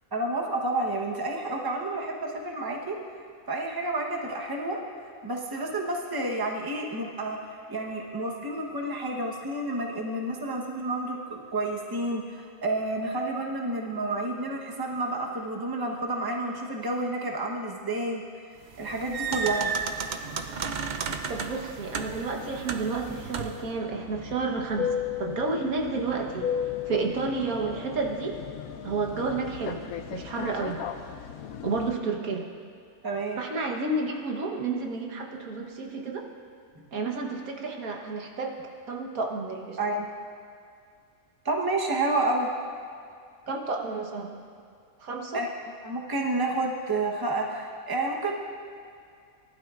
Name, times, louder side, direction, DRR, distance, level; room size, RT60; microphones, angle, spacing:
voice 1, 0.1-3.0 3.5-4.8 5.2-18.2 18.8-19.7 32.2-32.3 33.0-33.4 36.8-36.9 39.8-40.1 41.4-42.5 45.3-45.5 45.8-48.3, right 2 dB, 20° right, 0 dB, 0.9 m, -30 dB
sound 1, 18.7-23.7, right 5 dB, 60° right, 0.5 m, -33 dB
voice 2, 21.3-26.5 26.8-28.4 28.8-29.8 30.1-30.8 31.6-32.4 33.4-36.2 36.9-38.6 38.9-39.8 43.5-44.4 45.0-45.4, right 3 dB, 85° right, 1 dB, 1.7 m, -31 dB
sound 2, 21.9-31.9, left 9 dB, 85° left, 1.1 m, -36 dB
19.0 x 12.0 x 2.5 m, 2.3 s
omnidirectional pair, 1.5 m